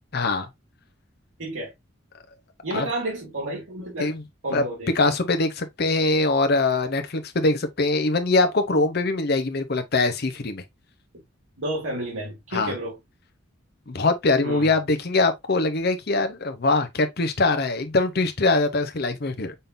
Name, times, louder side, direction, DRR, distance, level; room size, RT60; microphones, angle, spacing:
voice 1, 0.1-0.5 2.7-2.9 4.0-4.2 4.5-4.6 4.9-10.6 12.5-12.8 13.9-19.5, left 3 dB, 55° left, 0.8 m, -23 dB
voice 2, 1.4-1.7 2.6-4.1 4.4-4.9 11.6-12.9 14.4-14.7, right 1 dB, 80° right, 2.1 m, -31 dB
5.4 x 3.8 x 2.6 m
head